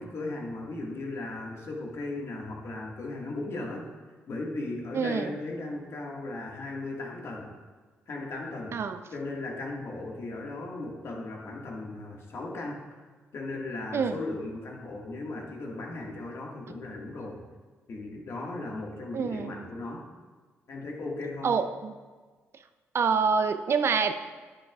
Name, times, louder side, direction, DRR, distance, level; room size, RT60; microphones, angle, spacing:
voice 1, 0.0-3.8 4.3-7.5 8.1-8.8 9.1-12.8 13.3-17.4 17.9-20.1 20.7-21.6, left 2 dB, 60° left, -1 dB, 1.8 m, -37 dB
voice 2, 4.9-5.4 8.7-9.0 13.9-14.2 19.1-19.6 21.4-21.9 22.9-24.1, right 5 dB, 55° right, 9 dB, 0.5 m, -26 dB
10.0 x 9.0 x 2.4 m, 1.4 s
supercardioid pair, 60°, 5 cm